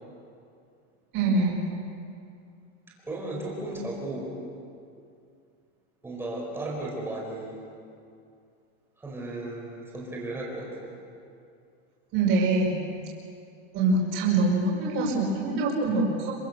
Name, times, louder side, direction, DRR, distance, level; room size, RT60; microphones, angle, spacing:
voice 1, 1.1-1.6 12.1-12.8 13.7-16.3, right 3 dB, 30° right, -3 dB, 5.4 m, -24 dB
voice 2, 3.0-4.3 6.0-7.6 9.0-10.9, right 2 dB, 5° right, -3 dB, 4.8 m, -35 dB
26.5 x 25.0 x 6.8 m, 2.5 s
supercardioid pair, 180°, 36 cm